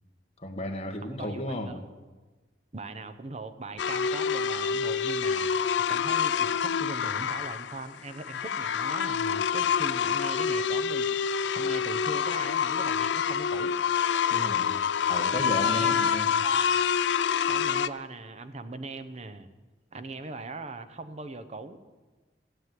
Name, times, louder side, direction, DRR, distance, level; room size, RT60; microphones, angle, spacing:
voice 1, 0.4-1.8 14.3-14.8 15.1-16.4, left 1 dB, 35° left, 3 dB, 1.5 m, -34 dB
voice 2, 1.0-1.9 2.7-13.7 15.6-16.7 17.5-19.5 19.9-21.8, right 3 dB, 35° right, 10 dB, 0.9 m, -40 dB
sound 1, 3.8-17.9, left 7 dB, 70° left, 0.4 m, -27 dB
15.0 x 7.7 x 9.3 m, 1.3 s
head